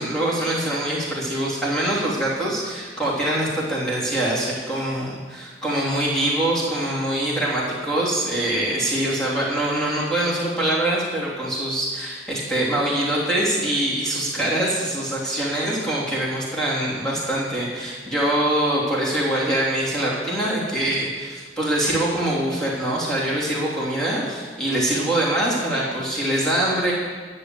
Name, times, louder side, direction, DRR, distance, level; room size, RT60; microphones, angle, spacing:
voice 1, 0.0-26.9, right 1 dB, 5° left, -6 dB, 3.1 m, -24 dB
11.0 x 6.9 x 7.7 m, 1.5 s
head